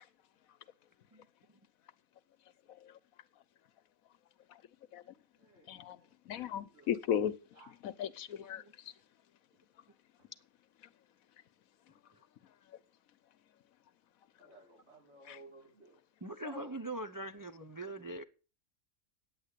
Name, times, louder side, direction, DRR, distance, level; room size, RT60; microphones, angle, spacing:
voice 1, 5.3-6.9 7.5-7.7 10.2-10.3 14.4-16.0 16.4-17.3, equal, 50° right, 4.4 m, -56 dB
voice 2, 6.3-7.3 7.8-8.6 15.3-15.4, left 9 dB, 80° left, 1.2 m, -35 dB
voice 3, 16.2-18.2, right 2 dB, 25° right, 0.4 m, -42 dB
9.8 x 8.7 x 8.2 m
omnidirectional pair, 1.5 m